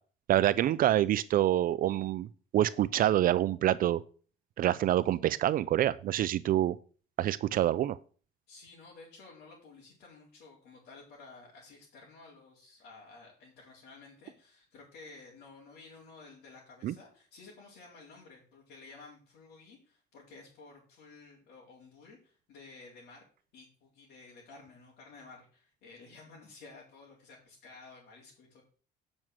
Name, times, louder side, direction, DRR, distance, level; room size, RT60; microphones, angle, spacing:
voice 1, 0.3-2.3 2.5-4.0 4.6-6.8 7.2-8.0 16.8-16.9, right 12 dB, 55° right, 15 dB, 0.5 m, -26 dB
voice 2, 8.5-23.2 23.5-28.6, left 3 dB, 75° left, -5 dB, 4.2 m, -53 dB
9.0 x 6.3 x 6.1 m, 0.40 s
cardioid pair, 110°, 17 cm